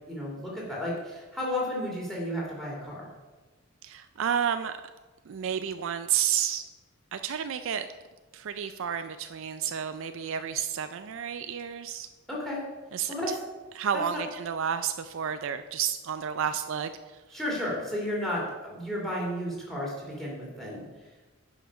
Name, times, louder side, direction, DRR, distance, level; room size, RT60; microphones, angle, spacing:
voice 1, 0.1-3.1 12.3-12.6 13.1-13.3 14.1-14.2 17.3-20.8, left 1 dB, ahead, -5 dB, 2.7 m, -33 dB
voice 2, 3.8-4.8 5.3-6.6 7.1-7.9 8.3-12.1 12.9-13.1 13.7-16.9, right 8 dB, 60° right, 10 dB, 0.4 m, -31 dB
10.0 x 5.8 x 5.1 m, 1.2 s
head